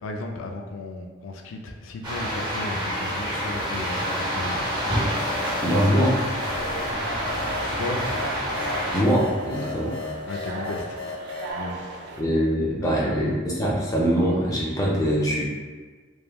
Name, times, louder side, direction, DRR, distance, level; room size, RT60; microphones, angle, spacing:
voice 1, 0.0-4.9 7.8-8.1 10.3-11.2 11.5-12.1 12.8-13.2, left 2 dB, 80° left, 3 dB, 0.3 m, -35 dB
sound 1, 2.0-9.0, equal, 20° right, 0.7 m, -28 dB
sound 2, 2.4-11.5, left 2 dB, 45° left, 0.8 m, -37 dB
voice 2, 5.6-6.2 8.9-10.0 12.2-15.5, equal, 15° left, -5 dB, 0.4 m, -23 dB
sound 3, 6.0-12.2, right 2 dB, 55° right, 0.3 m, -37 dB
3.1 x 2.1 x 2.2 m, 1.4 s
head